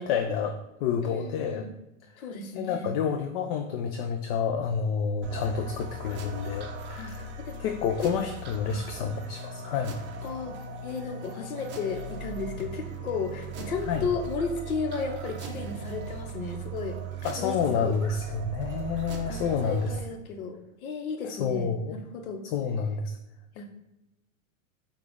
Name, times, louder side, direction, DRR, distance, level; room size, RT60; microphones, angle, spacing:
voice 1, 0.0-1.7 2.5-7.3 7.6-10.0 13.9-14.1 17.2-19.9 21.2-22.0 22.4-23.2, left 6 dB, 45° left, 5 dB, 0.4 m, -29 dB
voice 2, 1.0-1.7 2.2-2.9 7.0-7.6 8.0-8.1 8.7-8.8 10.2-17.0 17.4-18.0 19.3-22.4 23.5-23.7, left 5 dB, 80° left, 5 dB, 0.9 m, -34 dB
sound 1, 5.2-20.0, right 4 dB, 25° right, 0.6 m, -38 dB
6.0 x 2.4 x 3.5 m, 0.95 s
hypercardioid pair, 120°, 42 cm